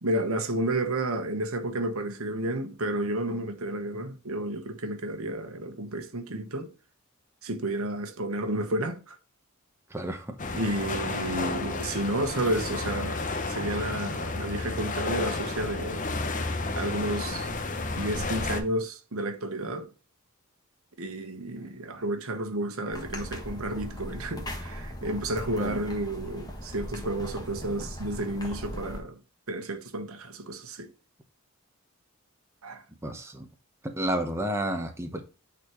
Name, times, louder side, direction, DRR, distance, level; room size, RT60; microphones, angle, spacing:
voice 1, 0.0-6.7 7.4-9.2 10.5-16.1 16.8-17.5 18.0-19.9 21.0-29.2 29.5-30.9 32.6-32.8, right 1 dB, 85° right, 1.2 m, -31 dB
voice 2, 9.9-10.3 25.6-25.8 33.0-33.5 33.8-35.2, right 1 dB, 10° right, 0.9 m, -31 dB
sound 1, 10.4-18.6, left 3 dB, 35° left, 0.8 m, -32 dB
sound 2, 22.9-29.0, equal, 20° left, 1.5 m, -39 dB
9.2 x 4.1 x 3.1 m
head